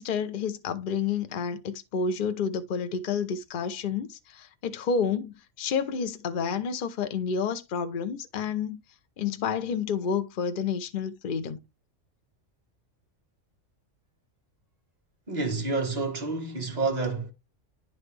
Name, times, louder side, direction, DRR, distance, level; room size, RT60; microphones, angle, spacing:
voice 1, 0.0-8.8 9.2-11.6, left 6 dB, 50° left, 0.8 m, -30 dB
voice 2, 15.3-17.3, right 3 dB, 35° right, 1.8 m, -29 dB
10.5 x 4.0 x 3.3 m
omnidirectional pair, 1.3 m